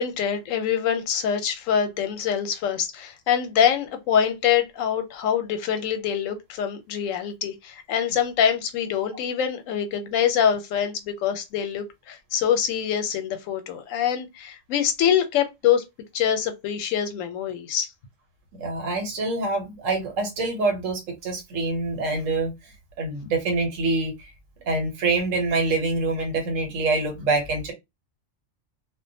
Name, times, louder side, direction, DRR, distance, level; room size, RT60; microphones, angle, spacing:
voice 1, 0.0-15.8 16.1-17.9, left 8 dB, 85° left, 1.0 m, -24 dB
voice 2, 18.6-22.5 23.0-24.3 24.7-27.7, right 3 dB, 85° right, 1.3 m, -25 dB
2.4 x 2.2 x 2.6 m
omnidirectional pair, 1.3 m